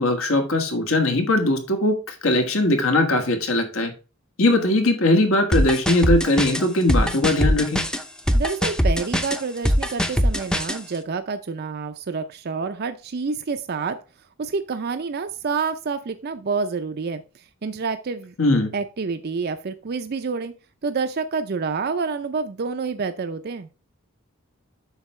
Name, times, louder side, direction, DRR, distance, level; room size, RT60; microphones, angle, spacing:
voice 1, 0.0-3.9 4.4-7.8 18.4-18.7, left 2 dB, 75° left, 5 dB, 1.5 m, -20 dB
sound 1, 5.5-10.8, equal, 5° left, 0.6 m, -21 dB
voice 2, 8.3-14.0 14.4-18.3 18.7-20.5 20.8-23.7, right 4 dB, 50° right, 8 dB, 0.5 m, -28 dB
8.1 x 5.8 x 3.2 m, 0.33 s
head